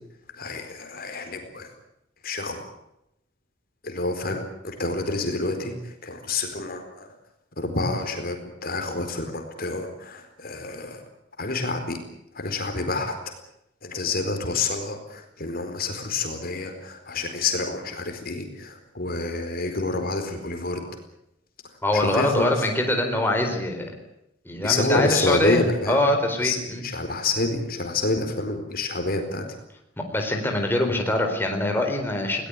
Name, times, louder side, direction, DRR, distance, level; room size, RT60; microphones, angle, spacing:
voice 1, 0.3-1.7 2.2-2.6 3.8-7.1 7.6-11.0 11.4-12.0 12.3-13.2 13.8-20.8 21.9-22.7 24.5-26.0 26.4-29.6, left 2 dB, 50° left, 6 dB, 4.3 m, -28 dB
voice 2, 21.8-23.9 24.5-26.8 30.0-32.5, left 1 dB, 10° left, 2 dB, 4.1 m, -24 dB
21.0 x 18.5 x 9.9 m, 0.83 s
head